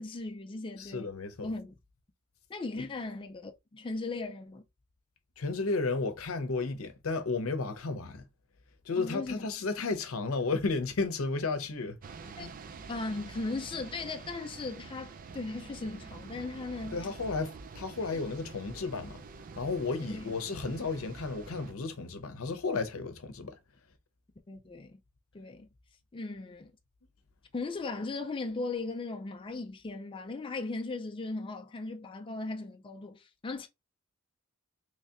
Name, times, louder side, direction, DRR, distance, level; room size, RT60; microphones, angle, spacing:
voice 1, 0.0-1.1 1.4-1.8 2.5-4.6 9.0-9.5 12.4-12.5 12.9-17.0 18.1-18.2 20.1-20.3 24.5-25.0 25.3-25.7 26.1-26.7 27.5-33.7, left 3 dB, 25° left, 0.4 m, -37 dB
voice 2, 0.8-1.5 2.8-2.9 5.4-8.2 8.8-12.5 16.9-19.2 19.6-23.6, left 3 dB, 80° left, 0.7 m, -33 dB
sound 1, 12.0-21.7, right 4 dB, 40° right, 0.4 m, -47 dB
3.2 x 2.7 x 3.4 m
head